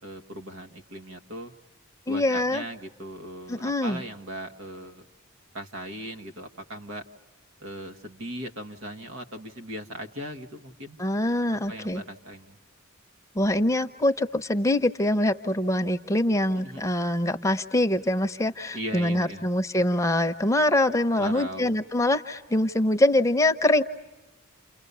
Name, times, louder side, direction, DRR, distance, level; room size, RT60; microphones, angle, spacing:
voice 1, 0.0-1.5 2.1-5.0 5.5-7.0 7.6-11.0 11.7-12.6 16.6-16.8 18.7-19.5 21.1-21.7, right 1 dB, 75° right, 5 dB, 1.8 m, -38 dB
voice 2, 2.1-2.6 3.5-4.0 11.0-12.0 13.3-23.8, left 1 dB, 15° left, 8 dB, 0.8 m, -24 dB
29.5 x 29.0 x 6.9 m, 1.1 s
head